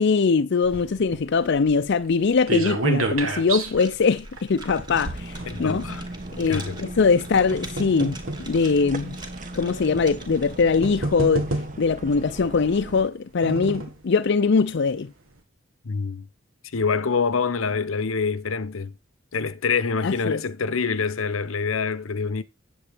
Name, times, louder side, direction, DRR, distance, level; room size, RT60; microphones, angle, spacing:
voice 1, 0.0-5.8 6.3-9.2 9.5-11.5 11.8-15.1 20.0-20.4, left 4 dB, 60° left, 0.5 m, -22 dB
sound 1, 0.6-6.1 7.0-8.5 9.3-9.4 10.4-10.5 10.8-12.0 12.9-14.0 14.5-14.6 14.8-14.9, right 2 dB, 85° right, 2.2 m, -30 dB
sound 2, 3.7-11.2, right 2 dB, 20° right, 2.5 m, -45 dB
sound 3, 4.9-13.1, right 1 dB, 40° right, 1.3 m, -38 dB
voice 2, 5.5-6.0 6.5-6.8 15.8-16.3 16.7-18.9 19.3-22.4, left 5 dB, 85° left, 0.9 m, -26 dB
9.9 x 7.9 x 5.0 m
head